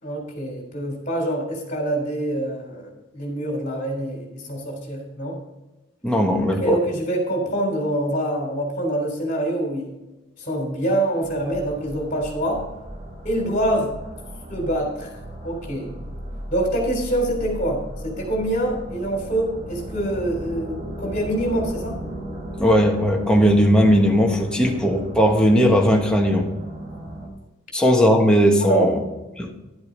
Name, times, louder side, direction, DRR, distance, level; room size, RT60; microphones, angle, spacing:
voice 1, 0.0-5.4 6.6-9.9 10.4-12.6 13.2-13.9 14.5-15.1 15.4-15.9 16.5-22.0 28.6-28.9, right 1 dB, 40° left, 0 dB, 3.4 m, -25 dB
voice 2, 6.0-6.7 22.6-26.5 27.7-29.0 29.3-29.5, equal, 5° left, 0 dB, 1.3 m, -17 dB
sound 1, 11.2-27.3, right 1 dB, 35° right, 2.3 m, -36 dB
11.5 x 7.9 x 4.0 m, 1.0 s
head